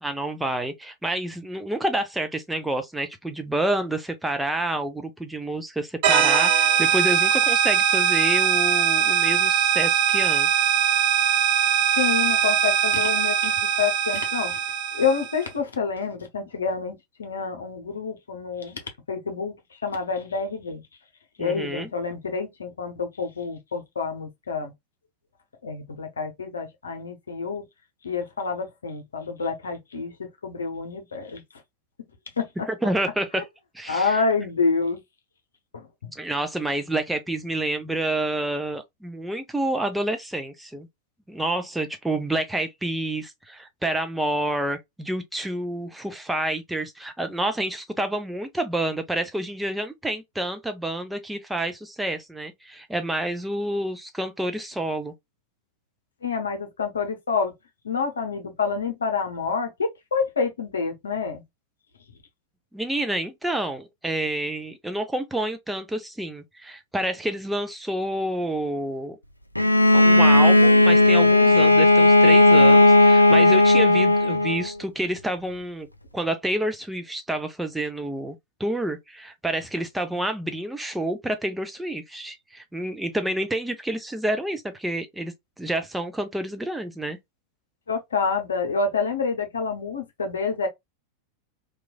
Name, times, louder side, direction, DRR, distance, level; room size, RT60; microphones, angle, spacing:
voice 1, 0.0-10.7 21.4-21.9 32.7-33.4 33.7-34.2 36.2-40.9 41.3-55.1 62.7-69.2 69.9-75.9 76.1-87.2, right 1 dB, 5° right, 0.5 m, -28 dB
sound 1, 6.0-15.4, right 8 dB, 45° right, 0.7 m, -21 dB
voice 2, 12.0-13.5 13.8-14.6 14.9-16.9 17.2-18.8 19.1-19.5 19.8-20.8 21.4-24.7 25.6-27.6 28.0-31.4 32.4-32.5 33.9-35.0 35.7-36.1 56.2-57.5 57.8-61.4 73.2-73.3 87.9-90.7, left 5 dB, 70° left, 0.8 m, -28 dB
Bowed string instrument, 69.6-74.7, left 2 dB, 85° left, 0.3 m, -15 dB
3.0 x 2.4 x 2.2 m
figure-of-eight pair, 90°, 0 cm